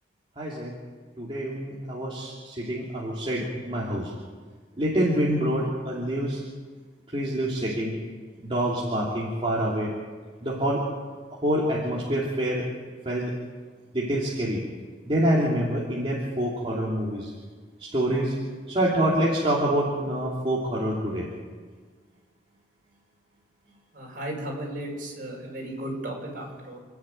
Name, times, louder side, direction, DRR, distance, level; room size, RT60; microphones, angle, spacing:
voice 1, 0.4-0.7 1.2-4.1 4.8-6.4 7.1-7.9 8.4-9.9 10.4-10.8 11.3-12.7 13.0-13.3 13.9-14.6 15.0-17.3 17.8-18.4 18.7-21.3, right 1 dB, 30° right, -5 dB, 3.2 m, -26 dB
voice 2, 24.0-26.8, right 1 dB, 45° right, -1 dB, 6.7 m, -35 dB
28.0 x 11.0 x 9.3 m, 1.5 s
head